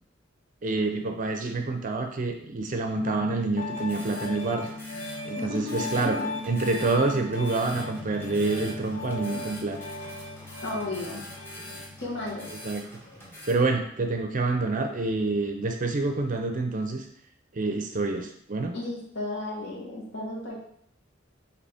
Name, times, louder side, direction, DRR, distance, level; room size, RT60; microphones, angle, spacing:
voice 1, 0.6-4.7 5.2-6.2 6.5-9.8 12.6-12.8 13.5-17.0 17.5-18.7, right 3 dB, 40° right, 4 dB, 0.5 m, -27 dB
Piano, 3.0-12.7, left 2 dB, 45° left, 0.6 m, -37 dB
sound 1, 3.6-13.5, left 1 dB, 10° left, 0.8 m, -45 dB
voice 2, 5.4-6.3 9.3-9.5 10.6-11.3 12.0-12.5 18.7-20.6, left 2 dB, 65° left, -4 dB, 1.3 m, -34 dB
4.0 x 2.8 x 3.4 m, 0.66 s
head